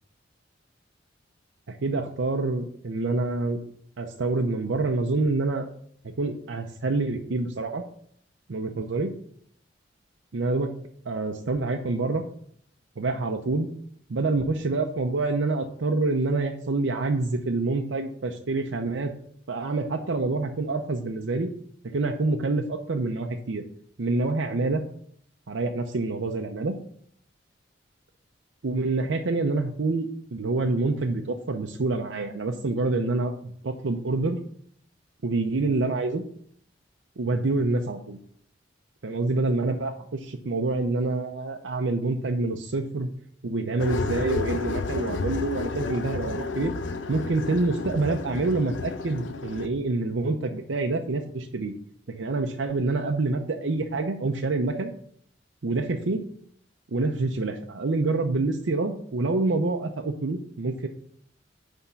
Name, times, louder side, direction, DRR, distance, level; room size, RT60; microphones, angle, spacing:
voice 1, 1.7-3.6 4.0-5.7 6.0-7.8 8.5-9.1 10.3-10.7 11.0-12.2 13.0-13.7 14.1-19.1 19.5-21.5 21.9-23.6 24.0-24.8 25.5-26.7 28.6-34.4 35.2-36.2 37.2-38.2 39.0-43.1 43.4-46.7 47.1-51.7 52.1-54.9 55.6-56.2 56.9-60.9, right 3 dB, 80° right, 3 dB, 0.6 m, -27 dB
sound 1, 43.8-49.7, left 3 dB, 90° left, 0.7 m, -31 dB
9.7 x 3.6 x 5.6 m, 0.65 s
head